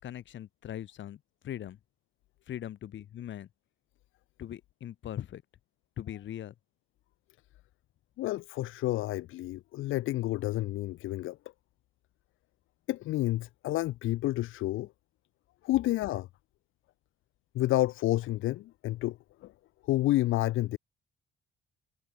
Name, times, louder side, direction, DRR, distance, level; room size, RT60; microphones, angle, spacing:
voice 1, 0.0-1.8 2.5-3.5 4.4-5.4 6.0-6.5, left 11 dB, 70° left, 4.2 m, -40 dB
voice 2, 8.2-11.4 12.9-14.9 15.6-16.3 17.5-19.5 19.8-20.8, left 16 dB, 85° left, 1.3 m, -30 dB
cardioid pair, 90°, 20 cm